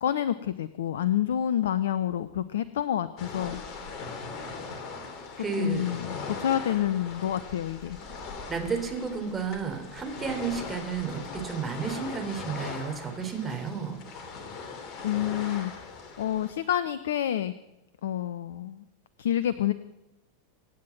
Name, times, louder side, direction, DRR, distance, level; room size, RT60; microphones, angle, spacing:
voice 1, 0.0-3.6 5.4-8.0 15.0-15.9 16.2-17.5 18.0-18.8 19.2-19.7, left 11 dB, 60° left, 15 dB, 0.7 m, -28 dB
sound 1, 3.2-16.5, left 4 dB, 35° left, 3.0 m, -40 dB
voice 2, 5.4-5.9 8.5-14.0, right 6 dB, 15° right, 4 dB, 3.5 m, -32 dB
25.0 x 9.6 x 6.0 m, 0.96 s
figure-of-eight pair, 90°, 0 cm